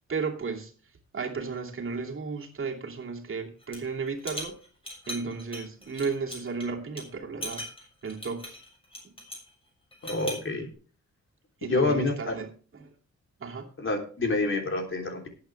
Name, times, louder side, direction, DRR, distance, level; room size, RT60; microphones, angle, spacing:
voice 1, 0.1-0.7 1.1-4.6 5.1-7.7 8.0-8.6 9.0-9.1 11.6-12.9 13.4-13.7, right 4 dB, 45° right, 0 dB, 2.6 m, -34 dB
sound 1, 3.6-3.9 4.2-6.6 7.0-7.1 7.4-9.5 9.9-10.5, left 1 dB, 20° left, 7.0 m, -39 dB
voice 2, 10.0-10.7 11.6-12.3 13.8-15.3, left 3 dB, 45° left, 3 dB, 3.4 m, -27 dB
18.5 x 8.8 x 3.4 m, 0.39 s
cardioid pair, 115°, 29 cm